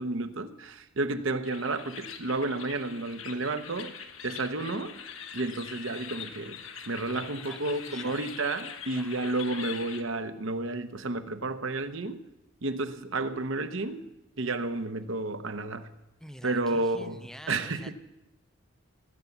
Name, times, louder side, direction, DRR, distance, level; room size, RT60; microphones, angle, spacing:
voice 1, 0.0-5.0 5.3-6.6 6.9-12.2 12.6-14.1 14.4-15.9 16.4-17.9, right 2 dB, 70° right, 10 dB, 0.9 m, -31 dB
sound 1, 1.4-10.0, left 7 dB, 75° left, 1.2 m, -43 dB
voice 2, 7.1-7.6 7.9-8.2 8.9-9.4 16.2-17.9, equal, 5° left, 10 dB, 0.4 m, -47 dB
18.0 x 8.0 x 7.2 m, 0.93 s
head